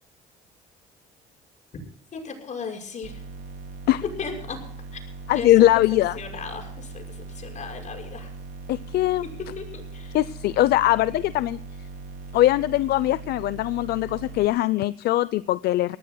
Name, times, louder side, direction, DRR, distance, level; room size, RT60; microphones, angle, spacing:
voice 1, 2.1-3.2 4.2-4.6 4.9-5.0 5.3-5.5 6.1-8.3 9.6-10.2, left 5 dB, 45° left, 1 dB, 6.2 m, -36 dB
sound 1, 3.0-14.5, right 4 dB, 80° right, 3.7 m, -40 dB
voice 2, 5.3-6.2 8.7-9.3 10.1-11.6 12.3-16.0, left 15 dB, 70° left, 16 dB, 0.5 m, -21 dB
26.0 x 18.5 x 2.2 m, 0.63 s
cardioid pair, 110°, 17 cm